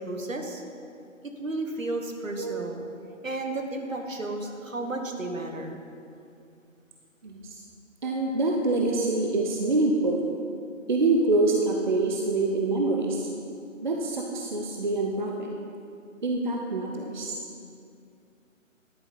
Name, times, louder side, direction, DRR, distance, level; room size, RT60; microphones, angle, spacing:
voice 1, 0.1-0.6 1.2-2.8 3.2-5.8, right 2 dB, 75° right, 3 dB, 1.5 m, -33 dB
voice 2, 7.2-7.6 8.0-10.3 10.9-13.3 13.8-15.5 16.2-17.4, right 2 dB, 35° right, 1 dB, 0.7 m, -25 dB
11.0 x 8.2 x 4.1 m, 2.5 s
figure-of-eight pair, 145°, 40 cm